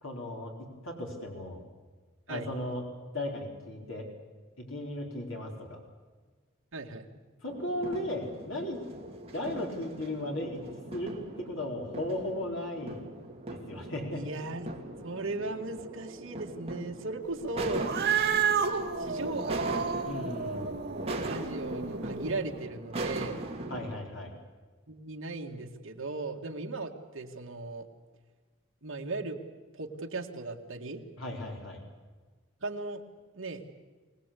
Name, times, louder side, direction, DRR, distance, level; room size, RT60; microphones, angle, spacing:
voice 1, 0.0-1.6 2.3-2.8 3.1-4.1 4.6-5.8 7.4-8.8 9.3-13.0 13.7-14.2 20.0-20.7 23.7-24.3 31.2-31.8, left 1 dB, 65° left, 1 dB, 4.3 m, -36 dB
voice 2, 6.7-7.1 14.1-14.7 15.0-17.9 19.0-19.7 21.2-23.5 24.9-27.9 28.8-29.4 29.7-31.0 32.6-33.0 33.3-33.6, right 3 dB, 65° right, 2 dB, 2.1 m, -37 dB
sound 1, 7.5-24.0, right 2 dB, 30° right, 2.7 m, -40 dB
Cat, 17.7-22.4, right 6 dB, 50° right, 2.1 m, -31 dB
24.5 x 18.5 x 8.5 m, 1.4 s
head